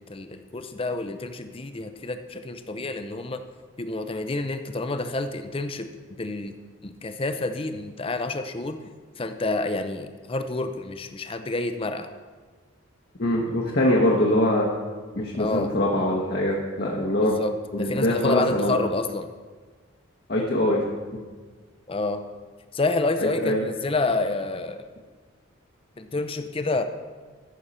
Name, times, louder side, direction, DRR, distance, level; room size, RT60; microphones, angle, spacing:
voice 1, 0.0-3.4 3.8-5.9 6.2-6.6 6.8-8.8 9.2-12.1 15.4-15.7 17.2-19.3 21.9-22.3 22.7-24.9 26.0-26.8, left 2 dB, 25° left, 9 dB, 0.5 m, -28 dB
voice 2, 13.2-14.7 15.1-17.3 17.7-18.8 20.3-20.8 23.2-23.6, left 1 dB, 45° left, -2 dB, 1.0 m, -23 dB
14.0 x 6.5 x 4.2 m, 1.4 s
head